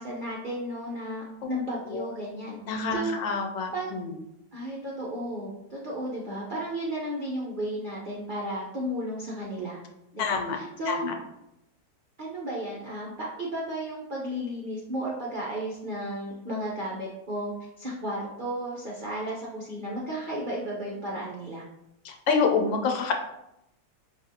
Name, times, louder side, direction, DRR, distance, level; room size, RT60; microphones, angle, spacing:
voice 1, 0.0-3.2 3.7-3.9 4.5-9.8 10.1-11.1 12.2-17.5 17.8-21.6, right 1 dB, 85° right, -4 dB, 0.4 m, -34 dB
voice 2, 2.7-4.2 10.2-10.6 10.9-11.1 22.0-23.1, left 5 dB, 85° left, 3 dB, 1.3 m, -27 dB
5.2 x 2.5 x 2.8 m, 0.85 s
omnidirectional pair, 2.0 m